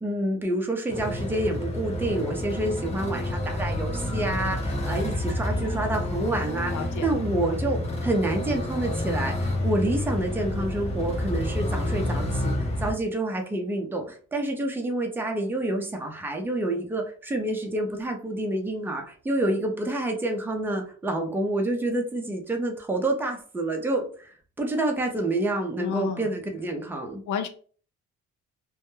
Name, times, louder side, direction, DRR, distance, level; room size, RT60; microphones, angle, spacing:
voice 1, 0.0-6.7 7.0-27.2, right 1 dB, 5° right, 2 dB, 0.6 m, -28 dB
sound 1, 0.9-12.9, left 1 dB, 20° left, 0.8 m, -29 dB
voice 2, 6.7-7.1 25.8-26.4 27.3-27.5, left 7 dB, 80° left, 8 dB, 0.5 m, -31 dB
2.2 x 2.1 x 3.0 m, 0.42 s
cardioid pair, 90°, 30 cm